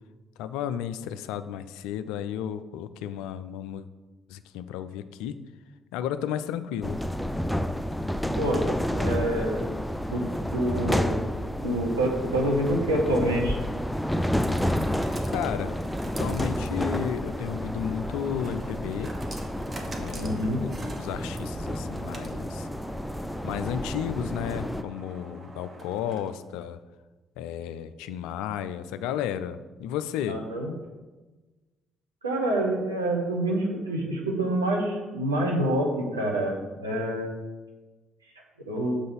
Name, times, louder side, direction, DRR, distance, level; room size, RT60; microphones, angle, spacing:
voice 1, 0.4-3.9 4.3-5.4 5.9-7.0 15.3-15.8 16.2-19.1 20.0-22.7 23.4-26.8 27.4-30.4, left 9 dB, 70° left, 12 dB, 0.3 m, -33 dB
sound 1, 6.8-24.8, equal, 5° left, 0.4 m, -30 dB
voice 2, 8.9-9.7 10.1-10.2 10.5-11.2 11.6-13.6 20.1-20.6 30.3-30.7 32.2-37.3 38.7-39.0, right 1 dB, 90° right, -2 dB, 1.0 m, -27 dB
sound 2, 12.7-26.5, right 2 dB, 30° right, 1.1 m, -44 dB
6.6 x 3.9 x 5.4 m, 1.2 s
figure-of-eight pair, 45°, 0 cm